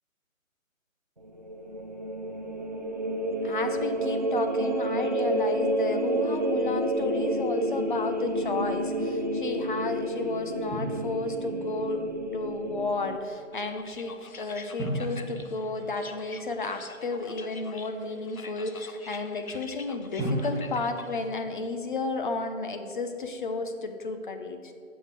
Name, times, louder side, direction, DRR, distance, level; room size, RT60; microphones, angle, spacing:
sound 1, 1.2-13.2, right 1 dB, 35° right, 0.4 m, -29 dB
voice 1, 3.4-12.0 12.3-24.7, left 3 dB, 35° left, 6 dB, 0.9 m, -32 dB
Drum, 10.7-11.8 14.8-16.6 20.2-22.2, right 1 dB, 10° left, 2.2 m, -36 dB
sound 2, 13.5-21.3, left 4 dB, 85° left, 1.0 m, -46 dB
9.3 x 6.6 x 6.9 m, 2.4 s
figure-of-eight pair, 150°, 41 cm